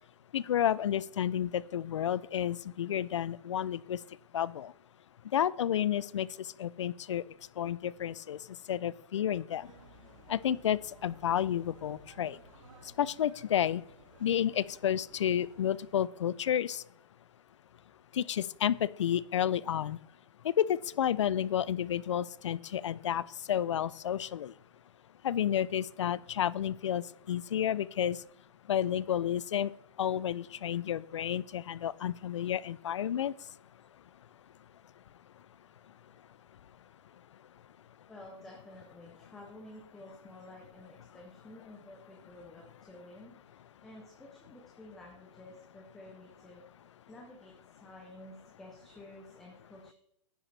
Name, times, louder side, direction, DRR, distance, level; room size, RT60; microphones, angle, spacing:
voice 1, 0.3-4.0 4.3-4.7 5.3-7.2 7.6-8.4 8.7-9.7 10.3-12.4 13.0-13.8 14.2-16.8 18.1-20.0 20.4-24.5 25.2-28.2 28.7-29.7 30.0-33.3, left 10 dB, 65° left, 20 dB, 0.4 m, -31 dB
sound 1, 9.6-15.9, right 3 dB, 85° right, 2.6 m, -57 dB
voice 2, 38.1-46.6 47.1-47.5 47.8-49.9, left 1 dB, ahead, -1 dB, 0.4 m, -52 dB
10.0 x 7.9 x 3.2 m, 0.74 s
hypercardioid pair, 180°, 16 cm